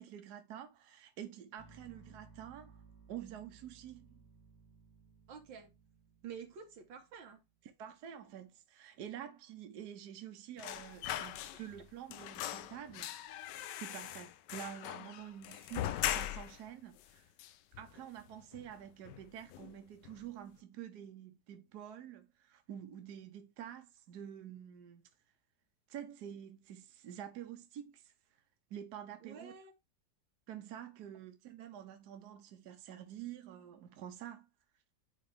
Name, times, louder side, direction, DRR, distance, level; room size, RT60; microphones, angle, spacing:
voice 1, 0.0-2.8 3.1-4.2 7.8-13.1 13.7-17.2 17.8-25.0 25.9-28.1 28.7-29.5 30.5-34.4, right 10 dB, 65° right, 1.4 m, -48 dB
sound 1, 1.6-7.6, right 5 dB, 60° left, 3.2 m, -61 dB
voice 2, 5.3-5.7 6.2-7.4 29.2-29.7, right 7 dB, 90° right, 1.9 m, -49 dB
sound 2, 10.6-11.8 12.1-16.6 17.0-17.1 17.4-18.2 18.5-18.7 19.1-19.7 20.0-20.2, left 12 dB, 75° left, 1.1 m, -40 dB
9.5 x 3.6 x 3.4 m
omnidirectional pair, 2.0 m